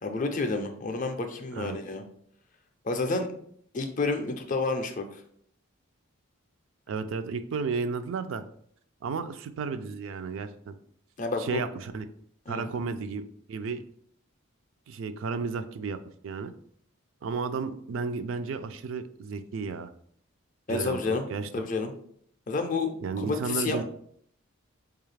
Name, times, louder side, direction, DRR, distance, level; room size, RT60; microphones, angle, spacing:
voice 1, 0.0-2.0 2.8-3.3 3.7-5.2 11.2-11.6 12.5-12.6 20.7-21.3 21.5-21.9 22.5-23.8, left 3 dB, 35° left, 6 dB, 0.4 m, -30 dB
voice 2, 6.9-8.4 9.0-10.7 11.4-12.0 12.5-13.8 14.9-16.5 17.2-19.9 20.7-21.7 23.0-23.8, right 5 dB, 65° right, 9 dB, 0.3 m, -33 dB
4.8 x 2.3 x 3.2 m, 0.64 s
head